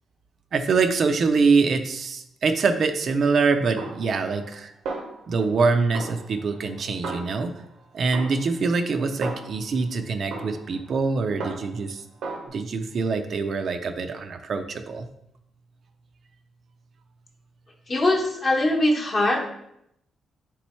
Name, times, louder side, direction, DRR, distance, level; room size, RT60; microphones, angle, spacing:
voice 1, 0.5-4.7 5.3-7.5 7.9-12.0 12.5-15.1, right 4 dB, 50° right, 8 dB, 0.3 m, -24 dB
Snare drum, 3.8-4.6 4.9-5.6 5.9-7.7 8.1-9.8 10.3-11.9 12.2-12.5, right 3 dB, 85° right, 0.7 m, -36 dB
voice 2, 17.9-19.5, left 1 dB, 30° left, 0 dB, 0.9 m, -22 dB
3.6 x 3.1 x 4.2 m, 0.78 s
cardioid pair, 120°, 0 cm